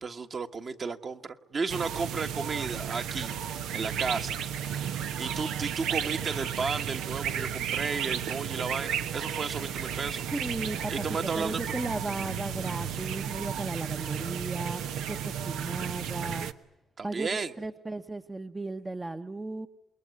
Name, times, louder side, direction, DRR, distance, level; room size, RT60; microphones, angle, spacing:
voice 1, 0.0-3.4 3.7-4.4 5.2-10.3 10.9-11.6 17.0-17.5, right 4 dB, 45° right, 6 dB, 1.6 m, -33 dB
sound 1, 1.7-16.5, right 8 dB, 90° right, 1.2 m, -33 dB
voice 2, 10.3-11.0 11.4-14.8 15.1-16.5 17.0-19.7, right 2 dB, 20° right, 7 dB, 1.0 m, -35 dB
28.0 x 21.5 x 9.6 m, 0.99 s
cardioid pair, 90°, 0 cm